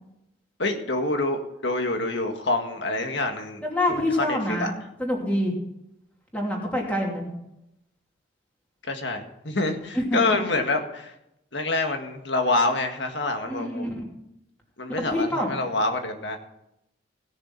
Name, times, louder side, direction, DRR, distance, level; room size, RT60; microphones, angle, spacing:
voice 1, 0.6-3.6 3.9-4.7 8.9-11.1 11.5-13.9 14.8-16.4, left 2 dB, 65° left, 5 dB, 1.7 m, -26 dB
voice 2, 3.7-4.7 5.0-5.5 6.3-7.3 9.9-10.3 13.4-14.0 15.1-15.5, left 1 dB, 5° left, -2 dB, 2.8 m, -26 dB
17.0 x 6.7 x 5.7 m, 0.83 s
head